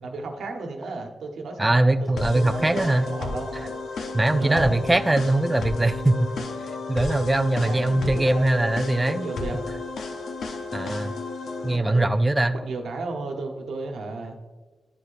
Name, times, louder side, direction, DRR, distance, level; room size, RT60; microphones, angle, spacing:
voice 1, 0.0-3.8 4.4-4.7 7.5-8.7 9.1-9.6 11.6-14.4, right 3 dB, 85° right, 3 dB, 1.1 m, -34 dB
voice 2, 1.6-3.0 3.6-3.7 4.1-6.3 6.9-9.3 10.7-11.1 11.6-12.6, right 2 dB, 15° right, 8 dB, 0.3 m, -21 dB
sound 1, 2.2-11.8, left 3 dB, 80° left, 0.7 m, -33 dB
10.5 x 4.9 x 2.5 m, 1.3 s
cardioid pair, 95°, 0 cm